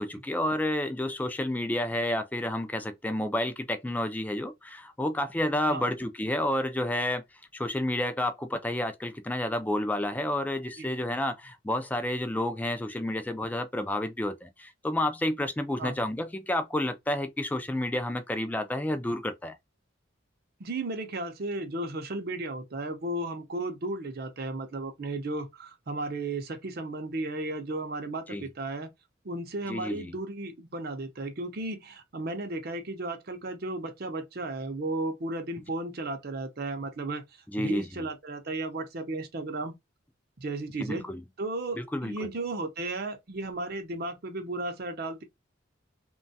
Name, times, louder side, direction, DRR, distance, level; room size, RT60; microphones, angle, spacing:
voice 1, 0.0-7.2 7.5-19.6 28.3-28.5 29.7-30.1 37.5-37.9 40.8-41.2 41.8-42.3, left 1 dB, 10° left, 0.3 m, -30 dB
voice 2, 20.6-28.9 29.2-37.2 37.6-39.7 40.4-41.1 41.4-45.2, right 2 dB, 50° right, 0.6 m, -34 dB
3.1 x 2.3 x 2.6 m
head